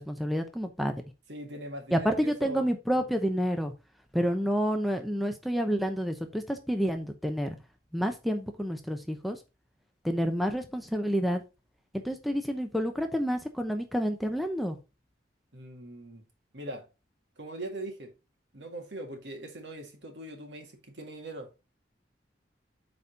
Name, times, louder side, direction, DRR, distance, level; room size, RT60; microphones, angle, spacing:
voice 1, 0.1-0.9 1.9-3.7 4.1-7.5 7.9-9.4 10.0-11.4 11.9-14.8, equal, ahead, 0.7 m, -29 dB
voice 2, 1.3-2.7 15.5-16.2 16.5-16.9 17.4-18.1 18.5-21.5, right 1 dB, 65° right, 1.9 m, -41 dB
8.1 x 4.2 x 4.1 m
head